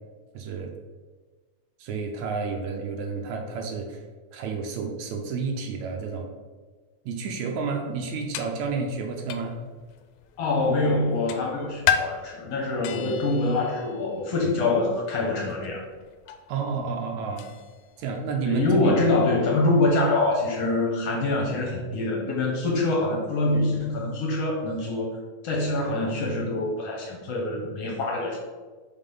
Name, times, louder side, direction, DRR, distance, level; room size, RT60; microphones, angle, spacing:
voice 1, 0.3-0.7 1.8-4.0 4.3-6.3 7.1-9.6 16.5-17.5 18.0-18.7, right 4 dB, 75° right, 3 dB, 1.9 m, -30 dB
sound 1, 7.9-21.1, left 9 dB, 80° left, 1.9 m, -36 dB
voice 2, 10.4-15.8 18.4-25.1 25.4-28.4, left 2 dB, 65° left, -1 dB, 1.8 m, -25 dB
5.7 x 4.1 x 5.3 m, 1.4 s
omnidirectional pair, 3.5 m